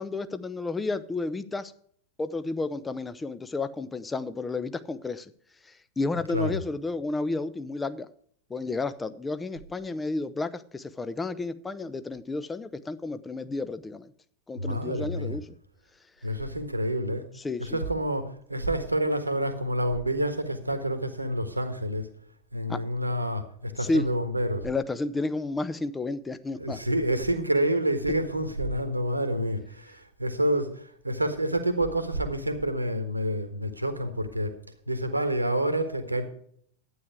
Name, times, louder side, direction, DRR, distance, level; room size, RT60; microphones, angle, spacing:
voice 1, 0.0-1.7 2.2-5.3 5.6-8.1 8.5-14.1 14.5-15.5 17.4-17.8 22.7-22.8 23.8-24.1 24.6-26.8, left 3 dB, 10° left, 0.7 m, -31 dB
voice 2, 14.6-15.4 16.2-17.3 17.6-22.1 22.5-24.6 26.6-34.5 34.9-36.2, right 1 dB, 85° right, 1.5 m, -28 dB
12.0 x 9.5 x 4.7 m
figure-of-eight pair, 90°, 0 cm